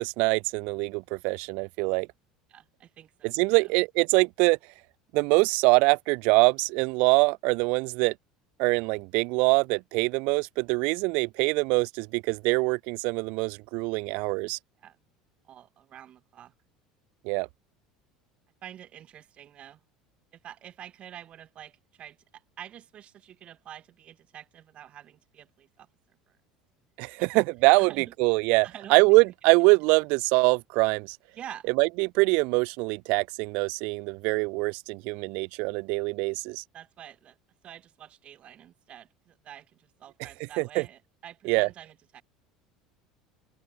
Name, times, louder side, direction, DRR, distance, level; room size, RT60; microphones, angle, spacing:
voice 1, 0.0-2.1 3.2-4.6 5.1-8.1 8.6-14.6 17.2-17.5 27.0-31.2 31.8-36.6 40.6-40.8 41.4-41.7, right 28 dB, 55° right, 0.8 m, -24 dB
voice 2, 2.5-3.7 14.8-15.0 15.4-16.5 18.6-19.8 20.3-26.4 27.2-27.4 27.8-28.1 28.6-29.0 31.3-31.7 36.7-37.4 37.6-42.2, right 11 dB, 40° right, 2.7 m, -47 dB
open air
figure-of-eight pair, 70°, 3 cm